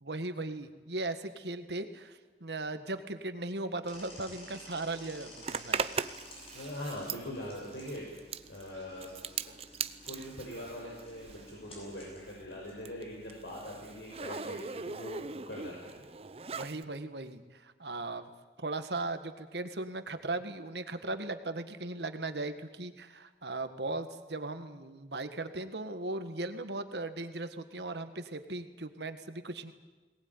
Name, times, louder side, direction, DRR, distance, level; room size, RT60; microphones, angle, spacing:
voice 1, 0.0-5.8 16.5-18.3 18.6-29.7, right 2 dB, 75° right, 9 dB, 1.7 m, -38 dB
sound 1, 3.8-14.2, left 1 dB, 35° left, 7.9 m, -54 dB
Zipper (clothing), 5.4-11.6 11.9-16.8, right 5 dB, 35° right, 0.7 m, -39 dB
voice 2, 6.5-8.2 8.5-9.1 9.4-9.5 10.0-16.0, left 1 dB, 85° left, -3 dB, 6.1 m, -42 dB
22.0 x 19.0 x 9.7 m, 1.2 s
head